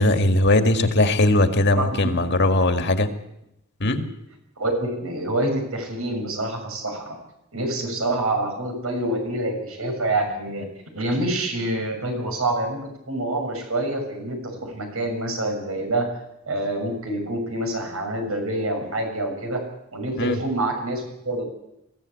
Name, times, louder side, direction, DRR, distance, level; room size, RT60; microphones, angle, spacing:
voice 1, 0.0-3.1 3.8-4.0 20.2-20.4, left 2 dB, 55° left, 6 dB, 1.9 m, -19 dB
voice 2, 1.7-2.2 3.9-4.1 4.6-7.1 7.5-10.7 10.9-16.1 16.4-19.6 19.9-21.4, right 1 dB, 80° right, 4 dB, 6.5 m, -26 dB
22.0 x 16.0 x 8.5 m, 0.86 s
head